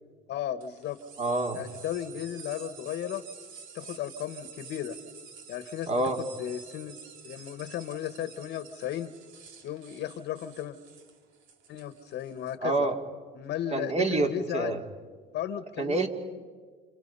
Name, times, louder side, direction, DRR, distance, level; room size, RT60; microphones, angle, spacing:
voice 1, 0.3-1.0 1.5-3.2 3.7-5.0 5.5-7.0 7.2-9.1 9.6-10.8 11.7-12.9 13.3-14.9 15.3-16.0, left 10 dB, 55° left, 11 dB, 1.4 m, -35 dB
sound 1, 0.6-12.5, right 6 dB, 70° right, 2.6 m, -49 dB
voice 2, 1.2-1.6 5.9-6.2 12.6-13.0 13.7-14.8 15.8-16.1, right 2 dB, 30° right, 4 dB, 2.8 m, -27 dB
29.5 x 27.5 x 5.6 m, 1.5 s
supercardioid pair, 95°, 20 cm